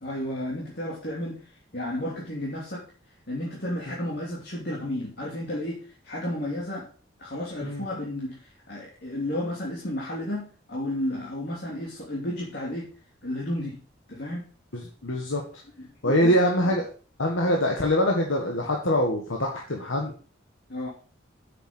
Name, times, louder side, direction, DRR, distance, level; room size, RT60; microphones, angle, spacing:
voice 1, 0.0-2.8 3.3-6.9 7.2-12.9 13.2-13.8 14.1-14.4 15.8-16.3 16.6-16.7 20.7-20.9, left 1 dB, 50° left, -5 dB, 3.0 m, -32 dB
voice 2, 14.7-15.4 16.0-16.9 17.2-20.1, equal, 75° left, 0 dB, 1.8 m, -24 dB
8.5 x 7.0 x 6.2 m, 0.40 s
head